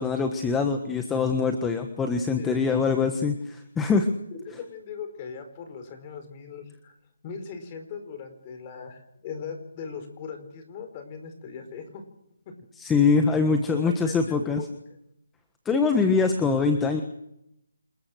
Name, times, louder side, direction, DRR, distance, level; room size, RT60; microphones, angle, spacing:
voice 1, 0.0-4.1 12.8-14.6 15.6-17.0, left 4 dB, 10° left, 6 dB, 1.4 m, -23 dB
voice 2, 2.4-3.0 4.3-6.9 7.2-12.0 12.5-12.6 13.7-14.8, left 6 dB, 25° left, 7 dB, 4.7 m, -39 dB
27.5 x 21.5 x 6.4 m, 0.82 s
figure-of-eight pair, 160°, 0 cm